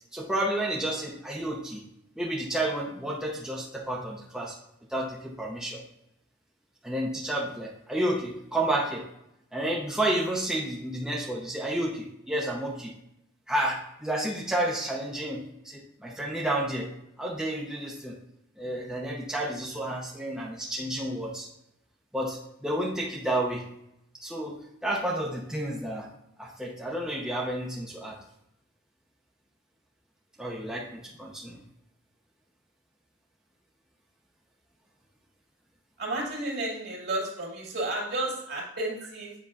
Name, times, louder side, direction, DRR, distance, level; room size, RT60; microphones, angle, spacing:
voice 1, 0.1-1.8 2.2-4.5 4.9-5.8 6.8-9.0 9.5-12.9 13.5-16.9 17.2-18.2 18.6-21.5 22.1-23.7 24.2-26.1 26.4-28.2 30.4-31.6, right 1 dB, 5° right, -4 dB, 0.7 m, -31 dB
voice 2, 36.0-39.3, right 2 dB, 55° right, -3 dB, 2.3 m, -32 dB
7.8 x 5.4 x 2.4 m, 0.81 s
head